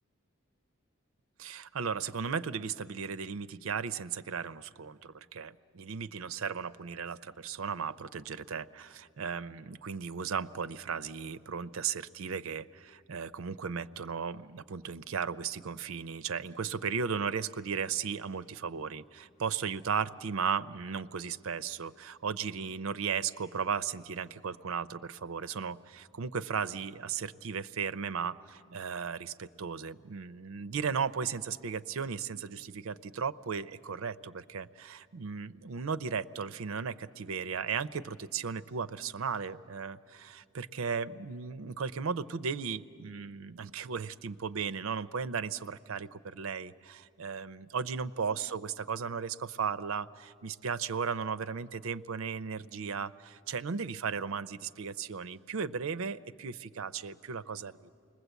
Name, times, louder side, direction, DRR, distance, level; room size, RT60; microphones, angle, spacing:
voice 1, 1.4-57.9, right 6 dB, 75° right, 14 dB, 0.5 m, -36 dB
28.5 x 21.0 x 8.1 m, 2.3 s
head